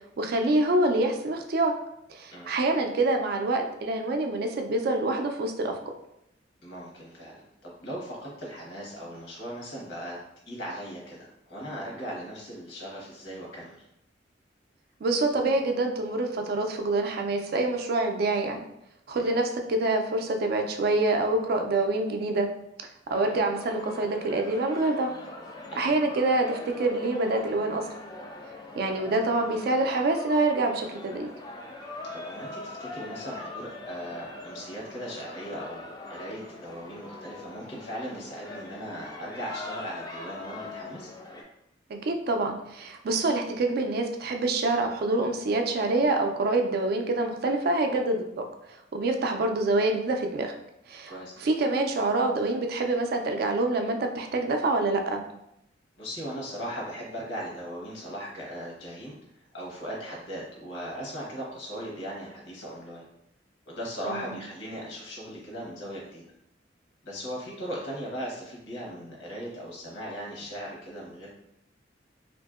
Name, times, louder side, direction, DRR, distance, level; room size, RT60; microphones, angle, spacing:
voice 1, 0.2-1.7 2.1-5.8 15.0-18.6 19.1-22.5 23.1-25.1 25.7-27.9 28.7-31.3 41.9-50.5 50.9-51.1 51.4-55.2 64.1-64.3, right 2 dB, 55° right, 4 dB, 0.3 m, -26 dB
voice 2, 6.6-10.2 10.5-13.8 19.2-19.3 25.7-25.9 32.1-41.1 51.1-51.4 56.0-59.1 59.5-63.0 63.7-66.2 67.0-71.3, equal, 85° left, -4 dB, 1.0 m, -38 dB
sound 1, 23.1-41.4, left 2 dB, 25° left, 0.3 m, -42 dB
2.7 x 2.5 x 2.4 m, 0.81 s
head